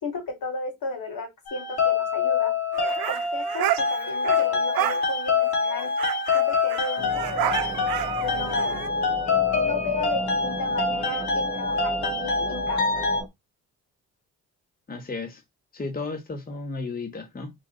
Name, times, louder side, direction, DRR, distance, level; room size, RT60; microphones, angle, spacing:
voice 1, 0.0-2.5 3.1-5.9 6.3-8.8 9.5-13.0, left 3 dB, 65° left, 2.7 m, -35 dB
sound 1, 1.5-13.2, left 5 dB, 85° left, 2.4 m, -25 dB
sound 2, 2.7-4.4 4.7-5.0 5.4-5.5 5.7-8.9, right 14 dB, 75° right, 0.6 m, -30 dB
sound 3, 7.0-13.3, right 2 dB, 15° right, 0.9 m, -36 dB
voice 2, 14.9-15.4 15.7-17.5, left 3 dB, 25° left, 1.3 m, -33 dB
4.1 x 2.8 x 3.9 m
supercardioid pair, 70°, 36 cm